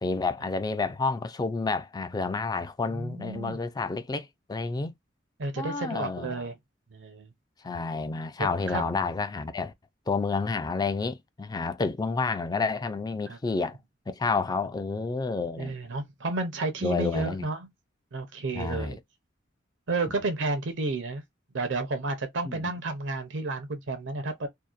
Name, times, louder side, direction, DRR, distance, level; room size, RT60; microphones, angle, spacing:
voice 1, 0.0-4.9 5.6-6.4 7.6-9.7 10.1-13.8 14.1-15.8 16.8-17.4 18.5-19.0 22.5-22.7, left 4 dB, 20° left, 0.3 m, -30 dB
voice 2, 2.9-3.7 5.4-6.5 6.9-7.3 8.4-8.9 13.3-13.4 15.6-17.7 18.1-19.0 19.9-21.2 21.5-24.5, right 3 dB, 75° right, 0.6 m, -31 dB
2.7 x 2.1 x 2.3 m
head